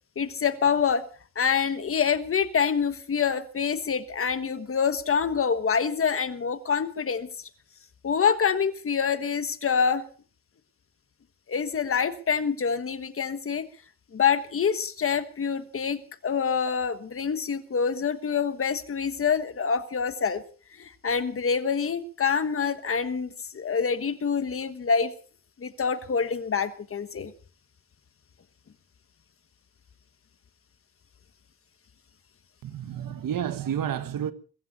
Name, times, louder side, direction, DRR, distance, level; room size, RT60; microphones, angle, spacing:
voice 1, 0.2-1.1 1.3-7.3 8.0-10.0 11.5-13.7 14.1-20.4 20.8-25.1 25.6-27.3, left 6 dB, 40° left, 1.4 m, -26 dB
voice 2, 32.6-34.3, right 9 dB, 65° right, 1.5 m, -30 dB
22.5 x 15.0 x 4.2 m
wide cardioid pair, 155°, 36 cm